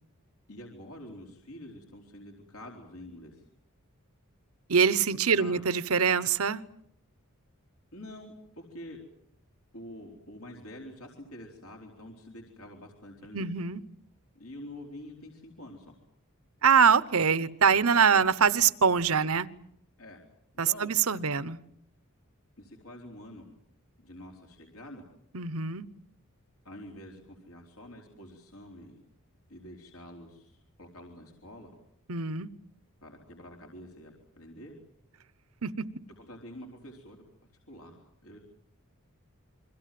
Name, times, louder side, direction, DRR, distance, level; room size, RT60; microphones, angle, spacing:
voice 1, 0.5-3.4 5.1-5.6 7.9-9.0 9.7-13.5 14.3-15.9 17.3-17.4 18.1-18.2 20.0-20.2 20.6-21.2 22.6-23.5 24.0-25.0 26.6-29.0 29.5-31.7 33.0-34.7 36.2-37.2 37.7-38.4, left 1 dB, 75° left, 1 dB, 4.2 m, -47 dB
voice 2, 4.7-6.6 13.3-13.8 16.6-19.5 20.6-21.6 25.3-25.9 32.1-32.5 35.6-35.9, right 6 dB, 75° right, 17 dB, 1.0 m, -24 dB
28.5 x 23.0 x 7.7 m, 0.73 s
head